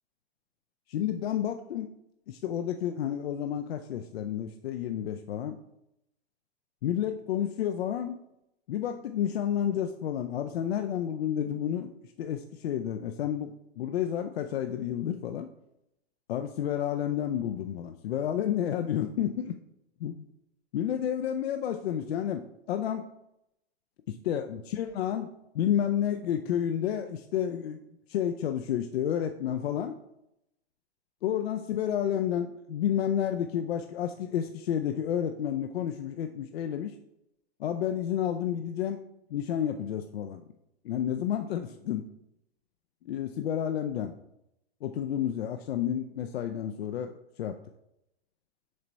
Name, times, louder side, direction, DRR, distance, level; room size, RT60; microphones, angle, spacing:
voice 1, 0.9-1.9 2.3-5.6 6.8-8.2 8.7-11.9 12.2-15.5 16.3-19.5 20.0-20.2 20.7-23.1 24.3-27.8 28.1-30.0 31.2-37.0 37.6-39.0 39.3-40.4 40.8-42.1 43.1-44.2 44.8-47.6, left 10 dB, 70° left, 7 dB, 0.5 m, -30 dB
6.5 x 3.9 x 4.4 m, 0.84 s
hypercardioid pair, 130°, 32 cm